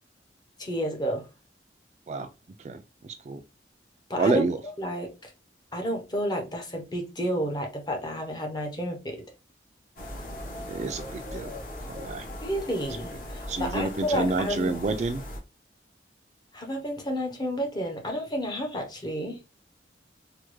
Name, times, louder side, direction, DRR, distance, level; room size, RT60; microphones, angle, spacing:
voice 1, 0.6-1.3 4.1-4.4 4.8-5.3 5.7-9.2 12.4-14.8 16.5-19.4, equal, 25° left, 0.7 m, -31 dB
voice 2, 2.6-3.4 4.1-4.6 10.7-11.5 11.9-12.3 13.5-15.2, right 3 dB, 40° right, 0.3 m, -28 dB
sound 1, 10.0-15.4, left 1 dB, 50° left, 1.1 m, -39 dB
3.4 x 2.2 x 3.1 m
head